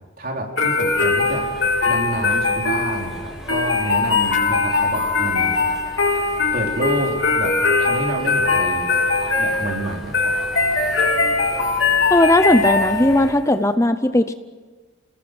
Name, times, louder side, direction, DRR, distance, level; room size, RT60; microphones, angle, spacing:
voice 1, 0.2-1.5 1.9-5.6 6.5-9.0 9.4-10.3, right 1 dB, 45° right, 1 dB, 3.8 m, -28 dB
sound 1, 0.6-13.4, left 3 dB, 70° left, 3.8 m, -21 dB
sound 2, 0.8-13.3, equal, 5° right, 4.6 m, -38 dB
voice 2, 12.1-14.3, left 1 dB, 15° left, 10 dB, 0.7 m, -17 dB
28.5 x 19.0 x 7.6 m, 1.4 s
head